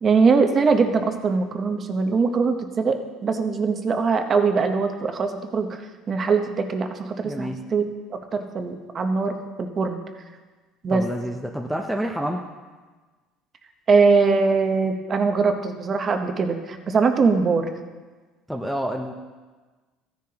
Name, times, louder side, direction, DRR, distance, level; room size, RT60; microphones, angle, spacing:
voice 1, 0.0-5.8 6.1-7.8 8.3-10.0 10.8-11.0 13.9-17.7, right 4 dB, 30° right, 6 dB, 0.9 m, -22 dB
voice 2, 7.2-7.6 10.9-12.4 18.5-19.1, equal, ahead, 1 dB, 0.6 m, -28 dB
15.0 x 10.5 x 2.9 m, 1.3 s
cardioid pair, 150°, 0 cm